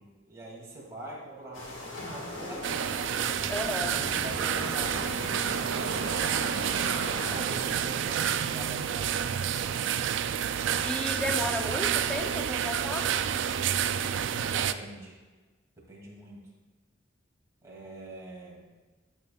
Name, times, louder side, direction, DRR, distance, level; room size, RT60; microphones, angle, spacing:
voice 1, 0.0-3.1 3.8-6.0 7.0-9.9 14.5-15.2 15.8-16.5 17.6-18.6, right 1 dB, 15° right, -5 dB, 2.5 m, -44 dB
sound 1, 1.5-7.4, left 1 dB, 80° left, 1.7 m, -38 dB
sound 2, 2.6-14.7, right 9 dB, 65° right, 0.3 m, -29 dB
voice 2, 3.5-4.0 10.8-13.2, left 1 dB, 5° left, 3 dB, 0.6 m, -33 dB
12.5 x 7.1 x 2.3 m, 1.3 s
head